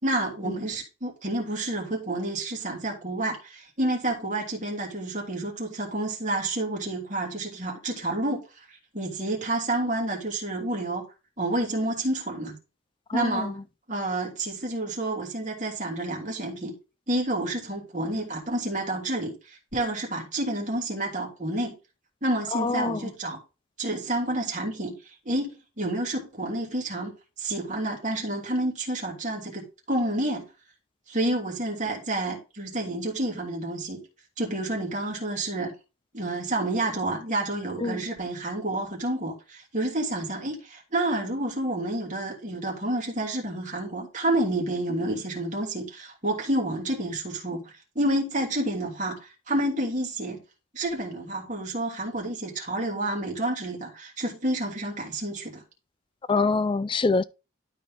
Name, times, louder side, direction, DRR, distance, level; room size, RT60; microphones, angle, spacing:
voice 1, 0.0-8.4 8.7-11.0 11.4-12.6 13.1-13.5 13.9-16.7 17.1-21.8 22.2-23.4 23.8-27.1 27.4-30.5 31.1-34.0 34.4-35.7 36.1-50.4 50.7-55.6, right 1 dB, 35° right, 2.9 m, -29 dB
voice 2, 13.1-13.5 22.5-23.0 37.8-38.0 56.3-57.2, left 3 dB, 25° left, 0.3 m, -25 dB
12.5 x 4.4 x 3.6 m
head